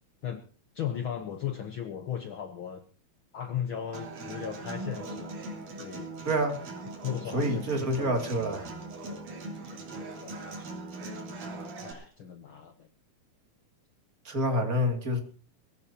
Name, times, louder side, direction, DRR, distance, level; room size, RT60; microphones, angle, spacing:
voice 1, 0.7-2.8 3.3-5.4 5.8-6.1 7.0-8.1 9.5-10.7 11.8-12.9, left 9 dB, 85° left, 1.1 m, -37 dB
Human voice / Acoustic guitar, 3.9-11.9, right 2 dB, 65° right, 4.5 m, -40 dB
voice 2, 6.2-6.6 7.3-8.7 14.2-15.2, equal, 30° right, 2.6 m, -27 dB
22.5 x 16.0 x 2.9 m
omnidirectional pair, 3.9 m